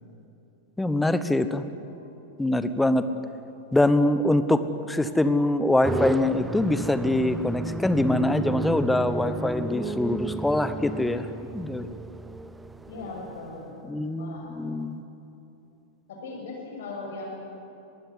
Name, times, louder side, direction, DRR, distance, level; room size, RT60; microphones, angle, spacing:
voice 1, 0.8-1.7 2.4-3.1 3.7-11.3 11.5-11.9 13.9-15.0, left 1 dB, 5° left, 12 dB, 1.0 m, -24 dB
sound 1, 5.8-13.6, right 3 dB, 10° right, 0.6 m, -33 dB
voice 2, 12.9-14.5 16.1-17.4, left 3 dB, 60° left, 0 dB, 6.6 m, -39 dB
22.0 x 16.0 x 9.8 m, 2.8 s
figure-of-eight pair, 90°, 0 cm